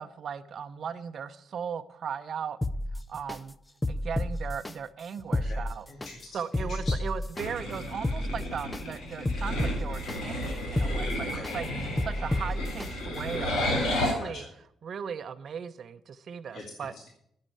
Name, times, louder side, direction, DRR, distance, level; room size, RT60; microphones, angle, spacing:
voice 1, 0.0-2.6 3.1-3.6 3.9-5.9 6.3-11.7 12.0-14.4 14.8-16.9, right 7 dB, 55° right, 9 dB, 0.7 m, -37 dB
sound 1, 2.6-3.4 3.8-4.7 5.2-6.1 6.5-7.4 7.9-8.8 9.2-10.2 10.6-11.5 12.0-12.9 13.3-13.4, left 1 dB, 15° left, 0.6 m, -30 dB
voice 2, 5.9-6.8 11.2-11.5 14.1-14.5 16.5-16.6 16.9-17.1, left 3 dB, 60° left, 0 dB, 2.1 m, -44 dB
sound 2, 7.4-14.1, left 1 dB, 85° left, 3.6 m, -32 dB
9.8 x 7.5 x 9.1 m, 0.73 s
cardioid pair, 90°, 0 cm